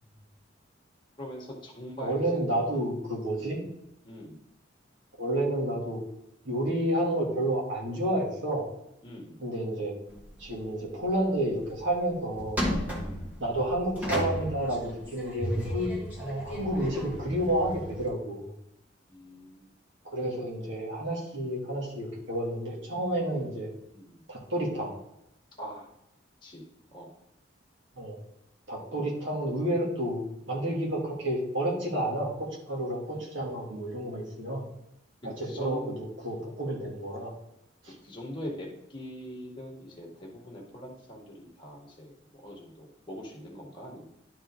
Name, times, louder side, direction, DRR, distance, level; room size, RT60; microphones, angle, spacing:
voice 1, 1.2-2.4 2.7-2.9 3.4-3.6 4.0-4.4 9.0-9.4 12.9-13.4 19.1-19.7 23.9-24.2 25.6-25.9 26.4-26.6 26.9-27.1 33.1-33.2 35.4-36.0 38.0-44.0, equal, 25° left, -3 dB, 2.0 m, -42 dB
voice 2, 2.0-3.6 5.2-6.0 6.4-8.7 9.4-9.9 10.4-12.7 13.4-18.5 20.0-23.7 24.3-24.9 28.0-28.2 28.7-34.6 35.2-37.3 37.8-37.9, right 1 dB, 70° right, -3 dB, 2.6 m, -30 dB
sound 1, 10.1-10.6 11.0-11.1 11.6-11.9 12.4-18.1, equal, 10° right, 1.6 m, -34 dB
11.0 x 4.9 x 3.8 m, 0.83 s
head